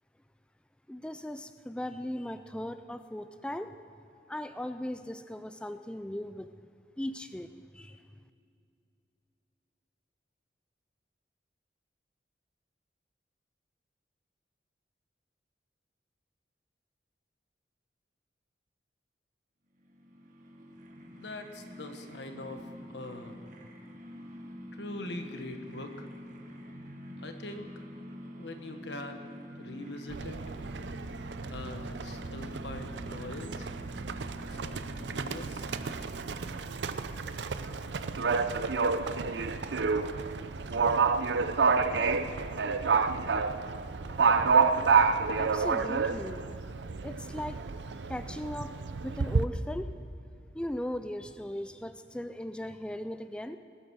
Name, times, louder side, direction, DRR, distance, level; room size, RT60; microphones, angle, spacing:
voice 1, 0.9-3.8 4.3-6.5 7.0-8.0 45.4-46.4 47.0-47.7 48.1-48.8 49.0-49.9 50.5-53.6, left 1 dB, 5° left, 10 dB, 0.3 m, -38 dB
sound 1, 19.8-36.4, equal, 50° right, 1.6 m, -47 dB
voice 2, 21.1-23.4 24.7-26.1 27.2-27.7 28.4-29.3 29.6-30.4 31.5-33.7 34.5-35.6, left 2 dB, 85° left, 5 dB, 1.4 m, -42 dB
Livestock farm animals working animals, 30.1-49.4, right 5 dB, 85° right, 0.6 m, -29 dB
20.0 x 8.9 x 6.3 m, 2.6 s
head